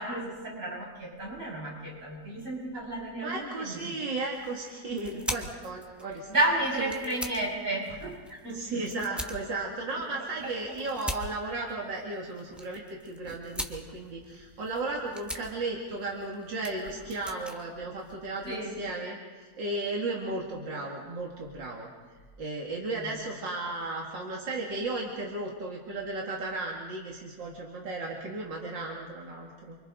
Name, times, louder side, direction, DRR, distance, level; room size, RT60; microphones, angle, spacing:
voice 1, 0.0-3.9 5.1-5.2 6.3-8.8 10.0-10.1 10.4-10.5 18.4-18.8 22.9-23.2, right 1 dB, 50° right, -3 dB, 6.5 m, -32 dB
voice 2, 3.2-6.3 6.8-7.0 8.5-21.9 22.4-29.8, right 2 dB, 90° right, -2 dB, 2.9 m, -35 dB
sound 1, 4.2-18.7, equal, ahead, 1.1 m, -43 dB
29.0 x 25.0 x 3.9 m, 1.5 s
omnidirectional pair, 1.9 m